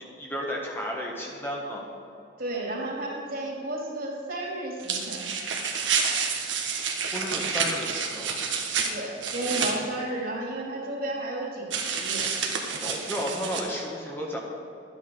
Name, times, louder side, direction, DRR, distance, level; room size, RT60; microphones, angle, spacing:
voice 1, 0.0-1.8 7.1-8.4 12.8-14.4, equal, 10° left, -2 dB, 1.3 m, -33 dB
voice 2, 2.4-5.3 8.9-12.2, right 1 dB, 50° right, -2 dB, 2.9 m, -33 dB
sound 1, 4.8-9.7 11.7-13.6, right 6 dB, 80° right, 1.5 m, -29 dB
12.5 x 8.9 x 5.4 m, 2.8 s
head